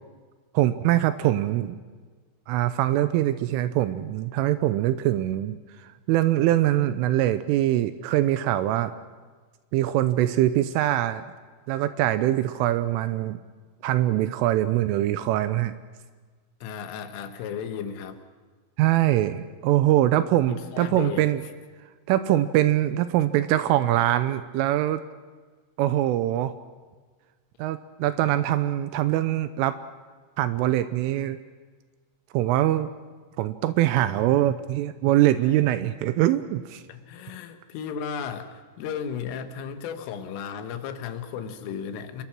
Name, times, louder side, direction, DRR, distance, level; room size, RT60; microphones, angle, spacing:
voice 1, 0.5-1.8 2.5-8.9 9.7-11.2 11.7-13.4 13.8-15.7 18.8-21.4 22.1-25.0 25.8-26.5 27.6-29.8 30.4-31.4 32.3-32.9 33.4-36.8, right 14 dB, 80° right, 12 dB, 3.3 m, -23 dB
voice 2, 16.6-18.2 20.5-21.3 36.9-42.2, left 7 dB, 80° left, 8 dB, 4.1 m, -34 dB
27.5 x 22.0 x 6.1 m, 1.4 s
omnidirectional pair, 5.8 m